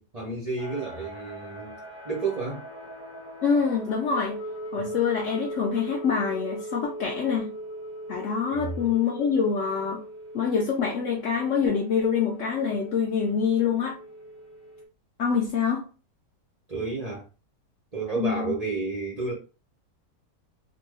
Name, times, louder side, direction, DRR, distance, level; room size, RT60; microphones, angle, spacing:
voice 1, 0.0-1.7 2.0-2.6 4.7-4.9 8.5-8.7 16.7-17.2 17.9-19.3, right 4 dB, 55° right, 0.4 m, -31 dB
sound 1, 0.6-14.8, right 1 dB, 40° left, 0.3 m, -40 dB
voice 2, 3.4-4.4 4.7-7.5 8.1-10.0 10.3-14.0 15.2-15.8 18.2-18.5, left 6 dB, 75° left, 0.7 m, -25 dB
2.9 x 2.1 x 3.3 m
omnidirectional pair, 1.8 m